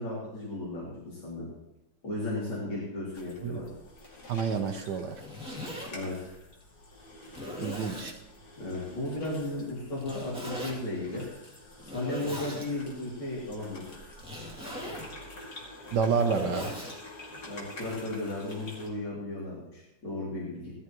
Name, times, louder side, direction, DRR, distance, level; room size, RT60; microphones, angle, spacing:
voice 1, 0.0-1.5 2.0-3.7 5.9-6.3 8.6-11.2 11.8-13.8 17.4-20.7, left 2 dB, 75° left, -7 dB, 3.9 m, -35 dB
sound 1, 3.1-18.9, left 1 dB, 50° left, 3.0 m, -48 dB
voice 2, 4.3-5.1 7.6-8.1 15.9-16.7, right 6 dB, 65° right, 6 dB, 1.3 m, -28 dB
Zipper (clothing), 5.0-5.9 6.6-6.7 7.3-8.2 10.0-10.7 11.8-12.7 14.1-15.1 15.9-17.0, left 1 dB, 5° right, 2.6 m, -39 dB
17.5 x 13.0 x 3.1 m, 0.87 s
omnidirectional pair, 2.3 m